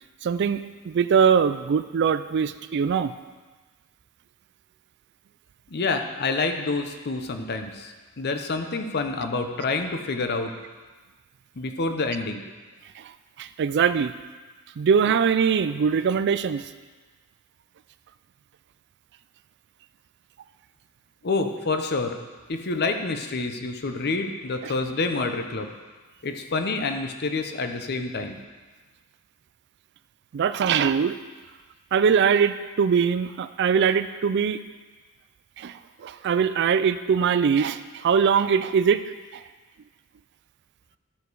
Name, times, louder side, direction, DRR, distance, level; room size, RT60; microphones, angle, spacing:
voice 1, 0.2-3.1 13.0-13.1 13.4-14.1 14.8-16.7 24.6-24.7 30.3-31.1 31.9-34.6 35.6-39.0, right 6 dB, 50° right, 12 dB, 0.3 m, -22 dB
voice 2, 5.7-10.5 11.6-12.4 21.2-22.2 22.5-25.7 26.2-28.4, left 3 dB, 45° left, 6 dB, 0.7 m, -28 dB
12.0 x 5.0 x 4.7 m, 1.3 s
head